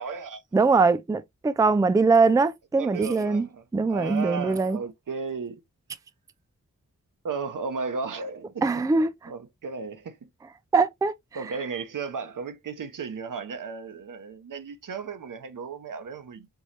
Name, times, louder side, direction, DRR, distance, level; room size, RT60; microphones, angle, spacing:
voice 1, 0.0-0.4 2.8-3.6 3.9-5.6 7.2-8.6 9.3-10.3 11.3-16.5, right 5 dB, 80° right, 0.8 m, -35 dB
voice 2, 0.5-3.5 3.7-4.8 8.6-9.3 10.7-11.1, right 4 dB, 10° right, 0.3 m, -22 dB
4.6 x 3.1 x 2.8 m
wide cardioid pair, 75°, 31 cm